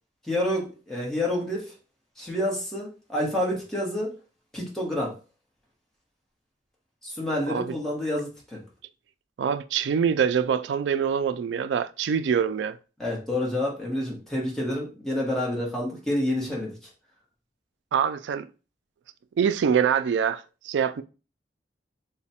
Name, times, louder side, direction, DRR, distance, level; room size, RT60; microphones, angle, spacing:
voice 1, 0.2-1.7 2.2-4.1 4.5-5.2 7.0-8.6 13.0-16.7, left 1 dB, 5° left, 1.2 m, -28 dB
voice 2, 9.4-12.8 17.9-18.5 19.4-21.0, right 7 dB, 90° right, 0.3 m, -24 dB
3.1 x 2.2 x 4.1 m
head